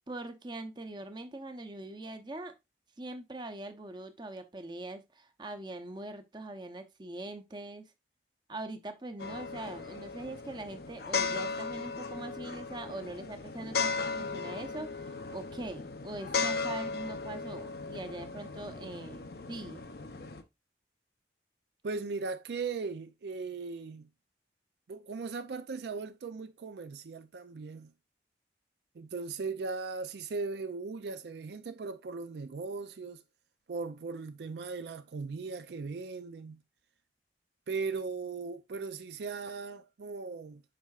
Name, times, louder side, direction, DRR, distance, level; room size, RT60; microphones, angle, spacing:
voice 1, 0.1-2.5 3.0-7.9 8.5-19.2 19.5-19.8, right 2 dB, 25° right, 0.7 m, -42 dB
sound 1, 9.2-20.4, left 4 dB, 60° left, 0.7 m, -36 dB
voice 2, 21.8-24.1 24.9-27.9 28.9-33.2 33.7-36.6 37.7-40.6, right 4 dB, 70° right, 0.4 m, -38 dB
7.6 x 5.5 x 2.4 m
head